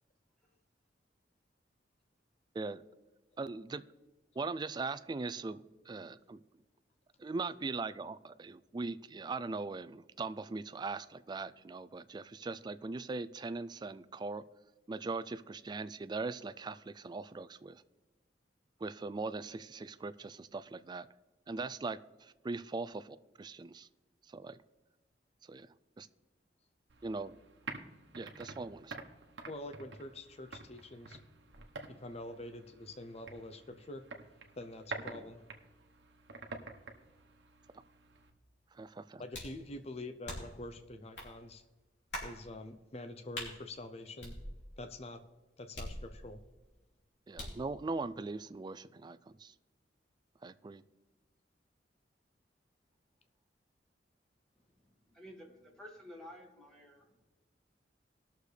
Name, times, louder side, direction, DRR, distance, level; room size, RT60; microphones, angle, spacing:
voice 1, 3.4-3.8 4.4-6.4 7.2-14.4 14.9-17.8 18.8-21.1 21.5-23.9 24.3-24.6 25.4-25.7 26.0-26.1 27.0-27.4 28.1-29.0 38.7-39.2 47.3-49.5 50.4-50.8, right 3 dB, 25° right, 14 dB, 0.3 m, -40 dB
sound 1, 26.9-38.3, right 3 dB, 80° right, 1.1 m, -49 dB
voice 2, 29.5-31.2 31.9-34.1 34.6-35.4 39.2-41.6 42.2-44.4 44.8-45.2 45.6-46.4, left 1 dB, 35° left, 8 dB, 0.6 m, -46 dB
sound 2, 39.3-39.6 40.3-40.6 41.2-41.3 42.1-42.4 43.3-43.5 44.2-44.9 45.8-46.4 47.4-47.7, left 1 dB, 80° left, 2.9 m, -43 dB
voice 3, 54.8-57.2, equal, 5° left, -1 dB, 1.9 m, -52 dB
19.5 x 6.6 x 3.3 m, 1.2 s
head